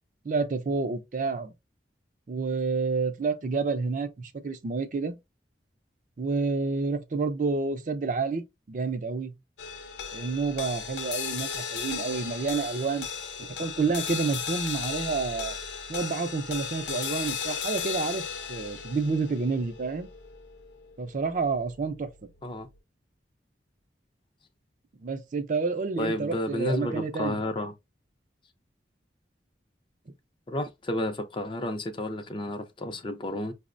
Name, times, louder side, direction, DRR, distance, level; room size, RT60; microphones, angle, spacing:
voice 1, 0.2-1.5 2.3-5.2 6.2-8.4 8.7-9.3 10.1-13.1 13.4-15.5 15.9-18.2 18.5-20.1 21.0-22.1 25.0-27.4, right 4 dB, 45° right, 0.4 m, -29 dB
sound 1, 9.6-22.1, left 6 dB, 75° left, 0.7 m, -36 dB
voice 2, 26.0-27.7 30.5-33.5, left 1 dB, 25° left, 0.4 m, -31 dB
5.8 x 2.1 x 2.4 m
head